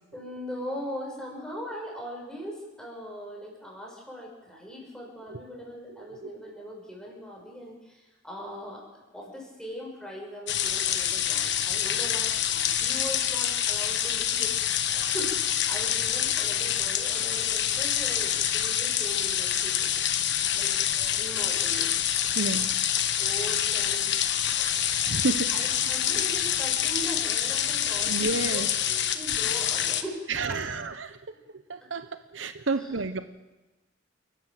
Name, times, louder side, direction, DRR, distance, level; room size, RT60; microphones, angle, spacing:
voice 1, 0.1-8.8 9.1-14.5 14.9-19.9 20.2-21.9 23.2-24.2 24.5-30.8 32.6-33.2, equal, 5° left, -2 dB, 6.5 m, -40 dB
sound 1, 10.5-30.0, left 10 dB, 65° left, 1.3 m, -26 dB
voice 2, 22.4-22.7 25.1-25.7 28.1-28.7 30.3-31.2 31.7-32.1 32.3-33.2, right 3 dB, 80° right, 11 dB, 1.0 m, -30 dB
28.5 x 12.5 x 7.6 m, 1.1 s
head